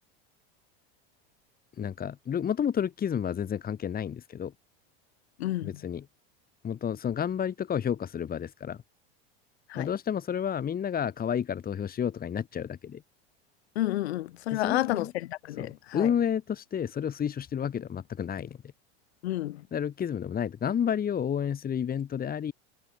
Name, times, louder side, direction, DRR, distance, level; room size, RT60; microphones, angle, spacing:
voice 1, 1.8-4.5 5.6-6.1 6.6-8.8 9.7-13.0 14.5-15.1 15.6-18.6 19.7-22.5, left 8 dB, 30° left, 3.1 m, -30 dB
voice 2, 5.4-5.7 9.7-9.9 13.7-16.1 19.2-19.6, left 16 dB, 85° left, 7.9 m, -30 dB
supercardioid pair, 110°, 31 cm